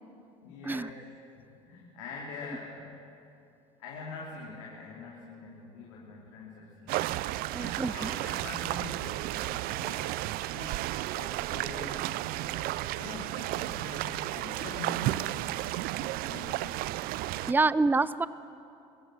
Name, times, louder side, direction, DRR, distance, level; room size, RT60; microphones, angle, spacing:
voice 1, 0.4-1.0 1.3-2.9 3.8-12.1 12.4-16.8 17.3-17.6, left 3 dB, 85° left, -3 dB, 2.9 m, -45 dB
sound 1, 6.9-17.5, right 17 dB, 65° right, 0.5 m, -33 dB
voice 2, 7.5-8.1 17.5-18.3, right 3 dB, 10° right, 17 dB, 0.5 m, -26 dB
22.0 x 16.0 x 7.4 m, 2.7 s
supercardioid pair, 75°, 16 cm